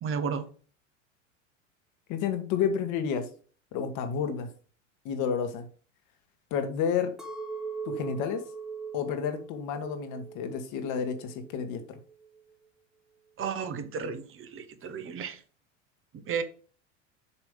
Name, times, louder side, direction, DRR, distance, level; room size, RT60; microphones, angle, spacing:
voice 1, 0.0-0.4 13.4-15.4 16.2-16.4, right 6 dB, 35° right, 1.0 m, -33 dB
voice 2, 2.1-3.3 3.7-4.5 5.0-5.7 6.5-7.1 7.8-8.4 8.9-12.0, left 7 dB, 50° left, 1.4 m, -30 dB
Chink clink, 7.2-11.5 11.9-12.5, right 5 dB, ahead, 1.1 m, -40 dB
7.0 x 3.2 x 5.1 m
hypercardioid pair, 90°, 38 cm